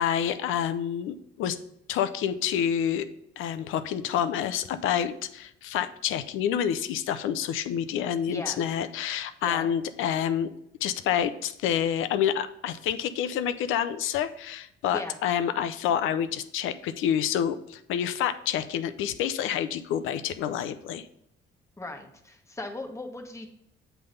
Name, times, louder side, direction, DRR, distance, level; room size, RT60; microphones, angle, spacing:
voice 1, 0.0-1.6 1.9-3.1 3.4-10.5 10.8-21.0, left 9 dB, 90° left, 11 dB, 0.6 m, -28 dB
voice 2, 8.3-8.6 9.4-9.7 14.9-15.1 21.8-23.5, left 2 dB, 15° left, 3 dB, 1.2 m, -38 dB
7.7 x 3.5 x 5.4 m, 0.77 s
cardioid pair, 90°, 20 cm